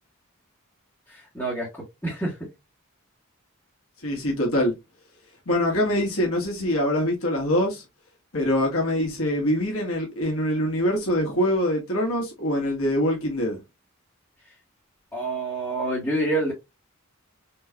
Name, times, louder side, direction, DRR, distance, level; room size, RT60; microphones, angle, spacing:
voice 1, 1.1-2.5 15.1-16.5, right 2 dB, 10° left, 1.6 m, -28 dB
voice 2, 4.0-4.7 5.4-7.8 8.3-13.6, left 1 dB, 70° left, 1.6 m, -24 dB
4.4 x 3.1 x 2.4 m
head